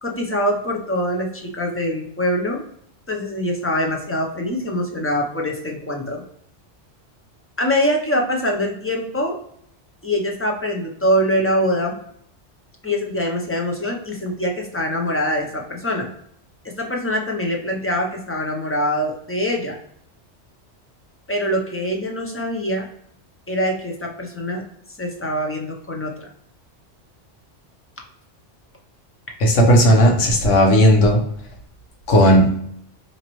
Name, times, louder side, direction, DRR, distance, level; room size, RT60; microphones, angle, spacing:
voice 1, 0.0-2.6 3.1-6.2 7.6-9.4 10.0-12.0 12.8-16.1 16.6-19.8 21.3-22.9 23.5-24.6 25.0-26.3, equal, 20° left, 1 dB, 0.3 m, -23 dB
voice 2, 29.4-31.2 32.1-32.5, equal, 85° left, 1 dB, 1.3 m, -14 dB
3.9 x 2.9 x 3.0 m, 0.69 s
omnidirectional pair, 1.2 m